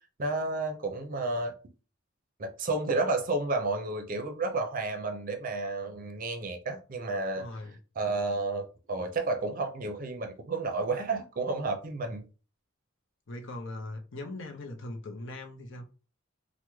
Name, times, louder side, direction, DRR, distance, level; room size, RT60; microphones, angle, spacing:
voice 1, 0.2-1.5 2.4-7.5 8.0-12.3, right 3 dB, 40° right, 0.5 m, -31 dB
voice 2, 7.4-7.8 13.3-15.9, left 2 dB, 60° left, 0.6 m, -40 dB
3.4 x 2.1 x 3.0 m
head